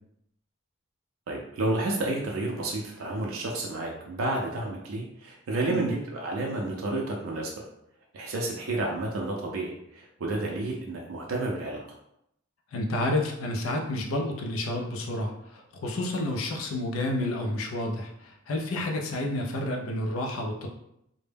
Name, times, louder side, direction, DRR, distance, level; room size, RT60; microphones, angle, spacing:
voice 1, 1.3-7.5 8.1-11.8, right 2 dB, 90° right, -1 dB, 0.4 m, -30 dB
voice 2, 12.7-20.7, left 1 dB, 80° left, 2 dB, 0.4 m, -30 dB
2.1 x 2.1 x 3.2 m, 0.79 s
head